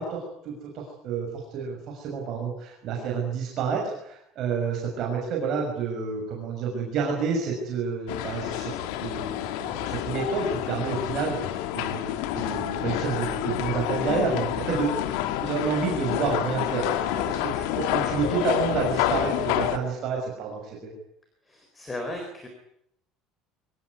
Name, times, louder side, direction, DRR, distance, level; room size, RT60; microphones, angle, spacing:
voice 1, 0.0-12.0 12.3-15.0 15.3-20.9, right 5 dB, 40° right, -1 dB, 6.1 m, -29 dB
sound 1, 8.1-19.8, left 12 dB, 85° left, 2.2 m, -28 dB
voice 2, 21.4-22.5, left 1 dB, 10° left, 4 dB, 4.1 m, -36 dB
24.0 x 19.0 x 9.6 m, 0.74 s
cardioid pair, 180°, 0 cm